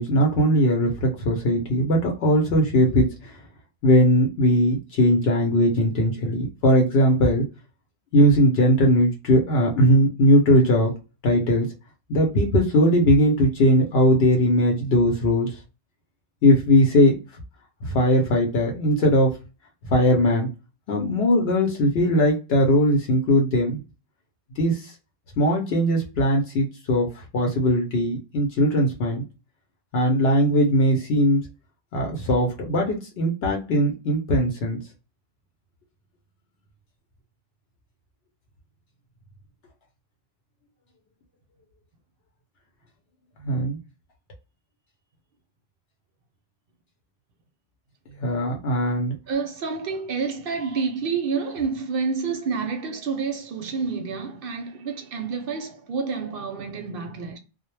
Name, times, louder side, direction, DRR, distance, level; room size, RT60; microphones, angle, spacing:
voice 1, 0.0-3.3 3.8-7.4 8.1-10.9 11.2-11.7 12.1-15.6 16.4-17.2 17.8-19.3 19.9-20.5 20.9-23.8 24.6-24.9 25.4-29.2 29.9-31.4 31.9-34.8 43.4-43.8 48.2-49.1, equal, 70° left, 0.8 m, -20 dB
voice 2, 49.3-57.4, right 5 dB, 65° right, 0.7 m, -29 dB
2.1 x 2.0 x 3.0 m
omnidirectional pair, 1.1 m